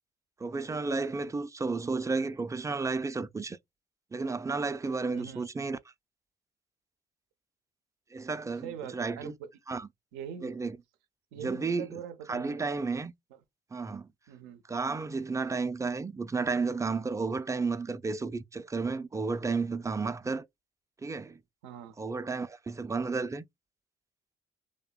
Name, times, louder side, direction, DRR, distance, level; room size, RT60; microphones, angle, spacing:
voice 1, 0.4-3.6 4.1-5.8 8.1-9.3 9.7-9.9 10.4-10.8 11.4-11.9 12.3-13.1 13.7-14.1 14.7-20.5 21.0-21.4 22.0-23.4, right 4 dB, 15° right, 0.3 m, -32 dB
voice 2, 5.1-5.5 8.6-9.5 10.1-10.5 11.3-12.6 13.3-13.4 14.3-14.6 21.6-22.0, right 8 dB, 90° right, 0.4 m, -42 dB
2.9 x 2.1 x 2.2 m
supercardioid pair, 55°, 19 cm